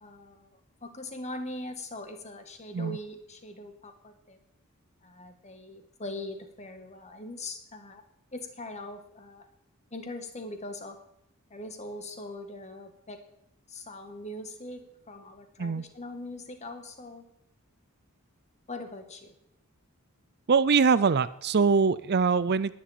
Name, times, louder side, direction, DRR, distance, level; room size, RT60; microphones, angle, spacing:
voice 1, 0.0-4.4 5.0-8.0 8.3-9.5 9.9-11.0 11.5-13.2 13.7-17.3 18.7-19.3, left 1 dB, 30° left, 6 dB, 2.1 m, -41 dB
voice 2, 20.5-22.7, right 5 dB, 50° right, 16 dB, 0.5 m, -23 dB
19.5 x 7.5 x 8.6 m, 0.78 s
head